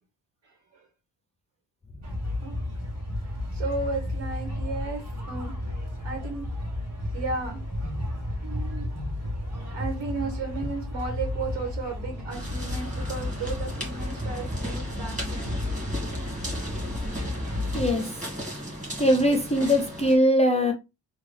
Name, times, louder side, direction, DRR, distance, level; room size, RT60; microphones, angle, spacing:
voice 1, 0.4-0.8 2.4-2.6 3.2-5.5 6.0-6.5 7.1-7.6 8.4-8.9 9.7-15.5, right 3 dB, 80° right, 1.3 m, -34 dB
sound 1, 2.0-17.9, left 1 dB, 40° right, 2.2 m, -32 dB
sound 2, 12.3-20.1, equal, 15° right, 1.8 m, -36 dB
voice 2, 17.7-18.1 19.0-20.7, equal, 15° left, 0.5 m, -21 dB
3.7 x 2.3 x 3.2 m
cardioid pair, 105°, 42 cm